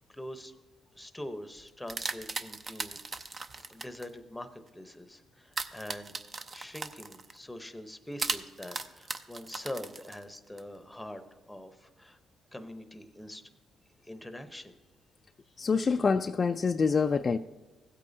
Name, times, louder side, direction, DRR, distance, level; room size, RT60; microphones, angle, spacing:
voice 1, 0.1-0.6 0.9-3.0 3.7-6.1 6.5-12.2 12.5-13.4 14.0-14.7, left 1 dB, 5° left, 0.8 m, -44 dB
sound 1, 1.6-4.1 5.5-7.4 8.2-10.6, right 3 dB, 35° right, 0.6 m, -37 dB
voice 2, 15.6-17.4, left 5 dB, 35° left, 0.3 m, -26 dB
16.0 x 8.3 x 2.7 m
cardioid pair, 90°, 0 cm